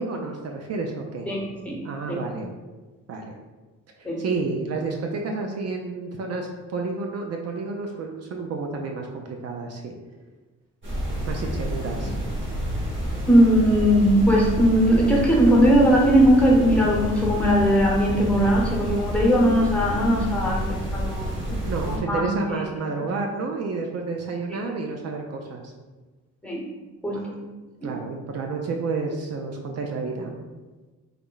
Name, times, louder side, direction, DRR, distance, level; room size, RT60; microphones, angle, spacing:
voice 1, 0.0-1.3 1.8-2.5 3.1-3.3 4.0-9.9 11.3-12.1 21.6-25.7 27.1-27.3 27.8-30.3, right 3 dB, 55° right, 2 dB, 0.5 m, -30 dB
sound 1, 10.8-22.0, equal, 40° right, 1.3 m, -29 dB
voice 2, 13.3-21.5 21.8-22.3 24.5-24.6 26.4-26.6 27.0-27.4 27.8-27.9, equal, 5° left, -3 dB, 0.9 m, -19 dB
3.4 x 2.0 x 3.8 m, 1.3 s
cardioid pair, 90°, 30 cm